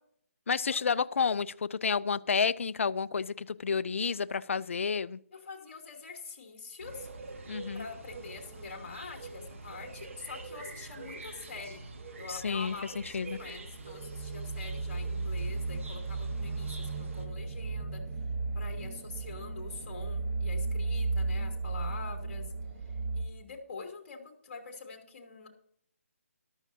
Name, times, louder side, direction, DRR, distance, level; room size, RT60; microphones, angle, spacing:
voice 1, 0.5-5.2 7.5-7.8 12.3-12.7 13.1-13.4, left 5 dB, 60° left, 0.5 m, -30 dB
voice 2, 5.3-7.1 7.7-11.8 12.2-18.0 18.5-22.5 23.1-25.5, left 4 dB, 45° left, 2.8 m, -45 dB
sound 1, 6.8-17.3, right 3 dB, 60° right, 1.9 m, -46 dB
sound 2, 13.8-23.2, right 3 dB, 45° right, 1.2 m, -34 dB
14.0 x 12.0 x 2.8 m
figure-of-eight pair, 155°, 8 cm